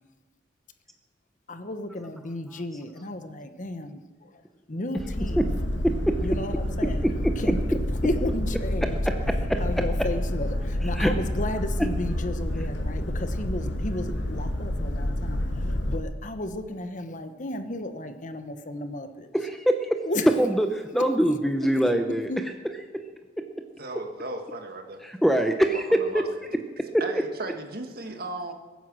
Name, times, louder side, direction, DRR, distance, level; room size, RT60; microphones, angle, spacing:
voice 1, 1.5-4.4 4.7-5.5 6.2-9.0 9.6-19.3 20.1-20.3 21.2-21.3 21.7-21.9 22.3-22.4, left 1 dB, 45° left, 8 dB, 1.0 m, -34 dB
Boat Water vehicle, 5.0-16.0, left 1 dB, 80° left, 1.6 m, -28 dB
voice 2, 5.8-6.2 7.0-7.3 8.8-9.8 11.0-11.1 19.3-20.0 20.4-22.3 22.9-23.0 23.4-23.5 25.0-26.3 26.9-27.0, right 1 dB, ahead, 5 dB, 0.7 m, -24 dB
voice 3, 23.8-25.0 25.9-26.2 27.0-28.5, right 2 dB, 55° right, 4 dB, 1.8 m, -36 dB
22.0 x 9.4 x 6.2 m, 1.3 s
head